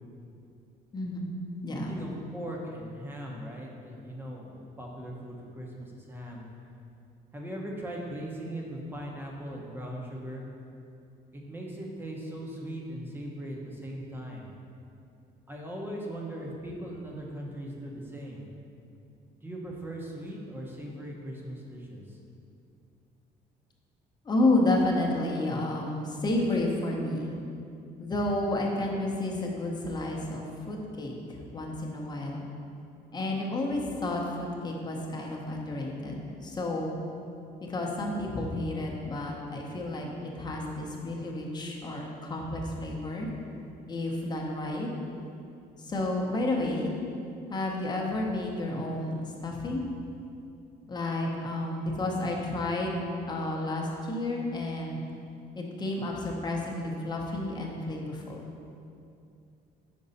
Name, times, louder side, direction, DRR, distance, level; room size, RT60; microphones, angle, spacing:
voice 1, 0.9-1.3 1.6-1.9 24.2-27.3 28.0-32.4 33.1-37.0 37.6-43.3 43.9-44.9 45.9-47.0 47.5-49.1 49.4-49.9 50.9-53.0 53.3-55.0 55.6-58.4, left 2 dB, 25° left, -1 dB, 0.9 m, -31 dB
voice 2, 1.9-6.5 7.3-10.4 11.5-14.5 15.5-18.5 19.4-22.0, right 1 dB, 10° right, -1 dB, 0.9 m, -39 dB
5.3 x 4.6 x 4.1 m, 2.6 s
cardioid pair, 110°, 17 cm